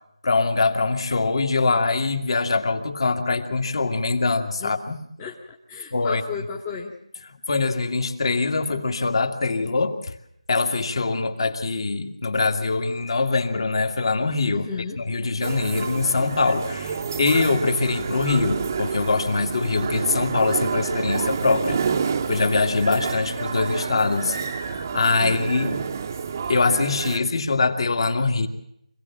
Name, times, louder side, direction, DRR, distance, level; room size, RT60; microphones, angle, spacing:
voice 1, 0.2-5.0 5.9-6.2 7.5-10.1 10.5-14.7 15.0-21.8 22.3-25.7 26.5-28.5, left 3 dB, 50° left, 6 dB, 2.2 m, -23 dB
voice 2, 5.2-6.9 14.5-15.0 25.1-25.4, left 6 dB, 15° left, 0 dB, 1.1 m, -34 dB
sound 1, 15.4-27.2, right 6 dB, 30° right, 0.9 m, -29 dB
25.5 x 17.0 x 7.5 m, 0.77 s
figure-of-eight pair, 165°, 4 cm